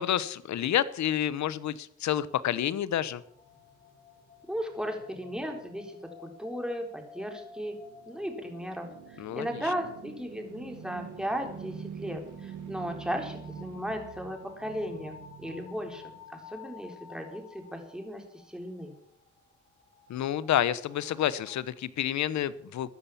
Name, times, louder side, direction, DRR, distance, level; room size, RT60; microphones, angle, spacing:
voice 1, 0.0-3.2 9.2-9.5 20.1-22.9, left 11 dB, 65° left, 17 dB, 1.0 m, -29 dB
sound 1, 2.9-21.6, left 6 dB, 30° left, 6.7 m, -54 dB
voice 2, 4.5-7.8 8.1-18.9, equal, ahead, 3 dB, 4.0 m, -36 dB
sound 2, 7.4-16.7, right 7 dB, 75° right, 2.1 m, -45 dB
14.5 x 10.5 x 7.1 m, 0.70 s
cardioid pair, 90°, 30 cm